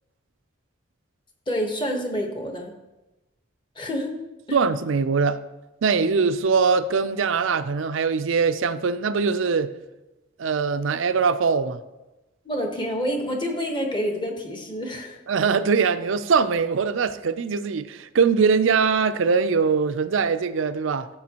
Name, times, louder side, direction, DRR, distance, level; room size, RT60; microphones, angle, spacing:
voice 1, 1.5-2.7 3.8-4.2 4.5-4.6 12.4-15.2, equal, 25° left, 1.1 m, -28 dB
voice 2, 4.5-5.4 5.8-9.7 10.4-11.8 15.3-21.1, right 5 dB, 75° right, 0.5 m, -22 dB
13.5 x 6.9 x 2.9 m
head